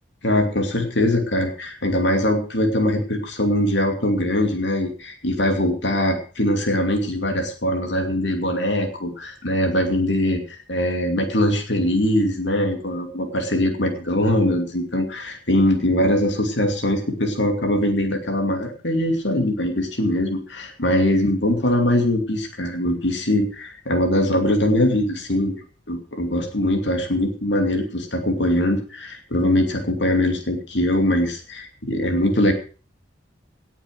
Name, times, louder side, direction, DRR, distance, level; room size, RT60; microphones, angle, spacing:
voice 1, 0.2-25.5 25.9-32.5, left 1 dB, 70° left, 4 dB, 2.6 m, -22 dB
18.5 x 7.2 x 6.4 m, 0.39 s
head